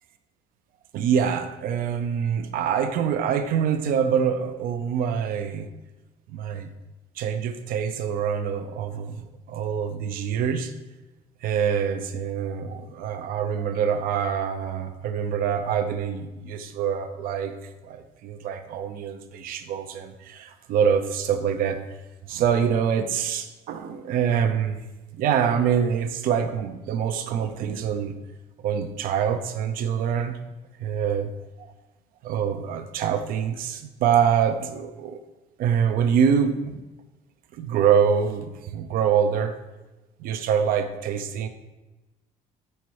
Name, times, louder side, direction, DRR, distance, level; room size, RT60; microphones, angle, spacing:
voice 1, 0.9-5.7 6.3-6.7 7.2-10.7 11.4-17.5 17.8-21.8 22.3-24.8 25.1-28.1 28.6-30.4 30.8-31.3 31.6-31.7 32.2-35.2 35.6-36.8 37.5-39.6 40.2-41.5, right 7 dB, 70° right, 8 dB, 0.6 m, -25 dB
5.5 x 4.5 x 4.7 m, 1.1 s
cardioid pair, 95°, 15 cm